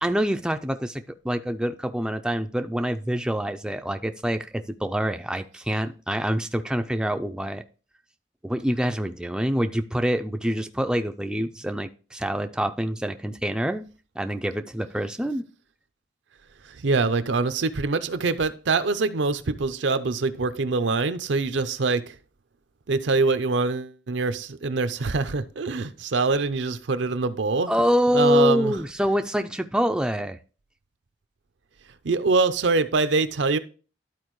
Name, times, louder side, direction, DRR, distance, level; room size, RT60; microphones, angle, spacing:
voice 1, 0.0-7.6 8.4-13.8 14.2-15.5 27.7-30.4, equal, 5° right, 0.4 m, -26 dB
voice 2, 16.8-22.1 22.9-27.7 28.1-28.7 32.0-33.6, right 3 dB, 70° right, 0.6 m, -24 dB
12.0 x 4.4 x 3.1 m
head